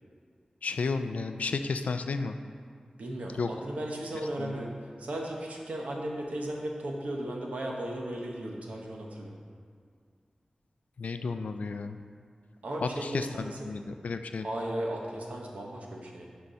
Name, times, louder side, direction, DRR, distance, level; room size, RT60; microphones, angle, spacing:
voice 1, 0.6-2.4 3.4-3.5 4.4-4.5 11.0-12.0 12.8-14.5, left 4 dB, 85° left, 8 dB, 0.3 m, -32 dB
voice 2, 3.0-4.7 5.0-9.3 12.6-13.7 14.4-16.3, right 1 dB, 80° right, -1 dB, 1.0 m, -36 dB
6.5 x 4.6 x 5.5 m, 2.1 s
wide cardioid pair, 60°, 2 cm